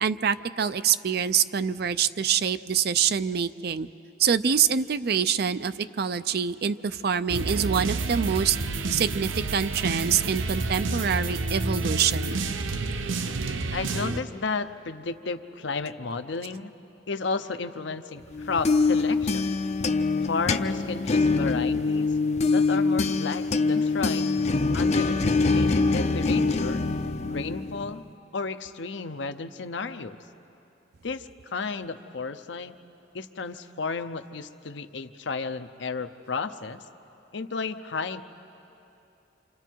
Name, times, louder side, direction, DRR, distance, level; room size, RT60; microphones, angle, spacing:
voice 1, 0.0-3.9 4.2-8.6 8.9-12.3, right 7 dB, 55° right, 13 dB, 0.5 m, -25 dB
sound 1, 7.3-14.2, right 3 dB, 90° right, 0.8 m, -29 dB
voice 2, 13.7-16.7 17.1-19.5 20.3-22.1 22.5-24.4 24.7-26.8 27.3-28.0 28.3-30.2 31.0-32.7 33.1-36.8 37.3-38.2, left 4 dB, 70° left, 9 dB, 0.7 m, -33 dB
sound 2, 18.3-28.0, left 3 dB, 35° left, 0.5 m, -24 dB
28.0 x 27.0 x 4.6 m, 2.9 s
head